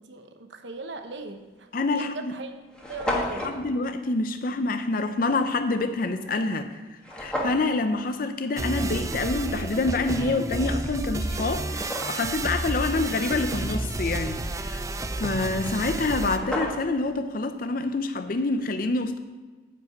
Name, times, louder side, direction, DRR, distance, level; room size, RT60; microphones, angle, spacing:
voice 1, 0.0-2.5 2.9-3.5, right 3 dB, 70° right, 6 dB, 1.0 m, -39 dB
sound 1, 1.2-1.4 2.1-2.2 2.4-2.5 2.7-3.6 7.0-7.7 10.6-10.7 11.2-12.4 15.7-15.8 16.1-17.1, left 1 dB, 5° left, 1.5 m, -32 dB
voice 2, 1.7-2.4 3.1-14.8 15.2-19.2, left 3 dB, 50° left, 8 dB, 0.5 m, -27 dB
sound 2, 8.6-16.4, right 2 dB, 15° right, 0.3 m, -31 dB
9.8 x 5.2 x 7.8 m, 1.4 s
head